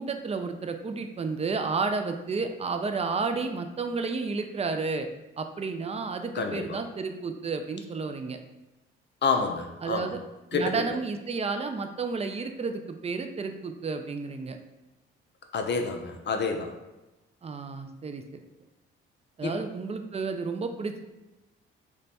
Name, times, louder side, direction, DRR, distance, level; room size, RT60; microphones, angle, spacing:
voice 1, 0.0-5.1 5.4-8.4 9.8-10.2 10.5-14.6 17.4-18.2 19.4-21.0, right 4 dB, 20° right, 7 dB, 0.4 m, -31 dB
voice 2, 6.3-6.8 9.2-10.1 10.5-10.7 15.5-16.7 19.4-19.6, left 4 dB, 35° left, 4 dB, 0.6 m, -28 dB
3.1 x 2.2 x 4.1 m, 1.0 s
hypercardioid pair, 40°, 30 cm